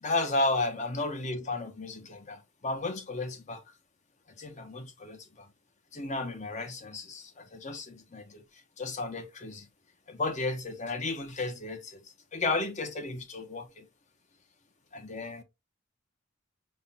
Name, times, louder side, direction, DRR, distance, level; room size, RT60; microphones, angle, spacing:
voice 1, 0.0-3.6 4.4-5.5 5.9-8.4 8.8-9.7 10.1-12.0 12.3-13.9 14.9-15.4, left 2 dB, 35° left, 0.8 m, -33 dB
5.5 x 2.2 x 2.6 m
head